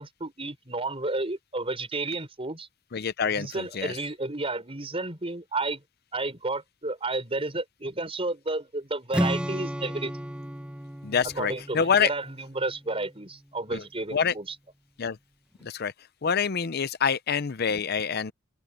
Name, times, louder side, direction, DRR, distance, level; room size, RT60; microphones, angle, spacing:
voice 1, 0.0-2.7 3.3-5.8 6.1-10.1 11.4-14.6, right 2 dB, 30° right, 5.5 m, -32 dB
voice 2, 2.9-3.9 11.0-12.1 13.7-13.8 14.1-14.3 15.0-15.2 15.6-15.9 16.2-18.3, left 6 dB, 50° left, 0.6 m, -26 dB
Strum, 9.1-13.2, equal, 5° right, 0.9 m, -33 dB
open air
head